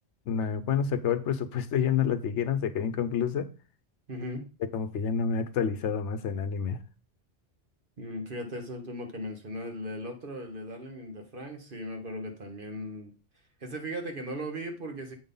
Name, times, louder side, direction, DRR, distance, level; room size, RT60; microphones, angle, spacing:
voice 1, 0.3-3.5 4.6-6.8, left 7 dB, 80° left, 1.0 m, -28 dB
voice 2, 4.1-4.5 8.0-13.1 13.6-15.2, equal, 50° right, 1.5 m, -37 dB
7.8 x 5.4 x 3.8 m
omnidirectional pair, 1.2 m